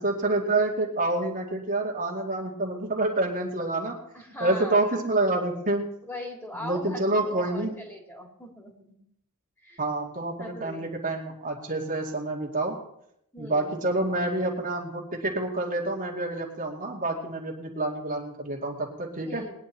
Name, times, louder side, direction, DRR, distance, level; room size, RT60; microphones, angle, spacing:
voice 1, 0.0-4.0 4.4-5.9 6.5-7.7 9.8-12.8 13.4-19.4, right 2 dB, 40° right, -1 dB, 2.3 m, -28 dB
voice 2, 4.1-4.8 6.1-8.9 9.6-9.8 10.4-10.9 13.3-13.8 19.2-19.5, left 1 dB, 10° left, 1 dB, 2.7 m, -40 dB
20.0 x 10.0 x 4.4 m, 0.76 s
head